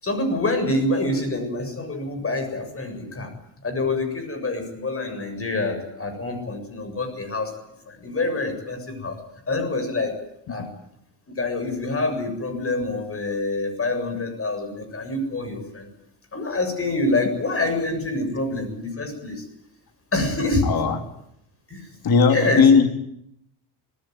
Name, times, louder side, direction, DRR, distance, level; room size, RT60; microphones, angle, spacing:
voice 1, 0.0-3.3 3.6-7.5 7.9-9.2 9.5-10.2 10.5-10.7 11.3-15.9 16.3-19.4 20.1-20.7 21.7-21.9 22.3-22.7, left 2 dB, 25° left, 8 dB, 7.2 m, -26 dB
voice 2, 20.7-21.0 22.0-22.9, left 5 dB, 45° left, 5 dB, 3.2 m, -16 dB
26.0 x 19.5 x 9.5 m, 0.78 s
cardioid pair, 130°, 49 cm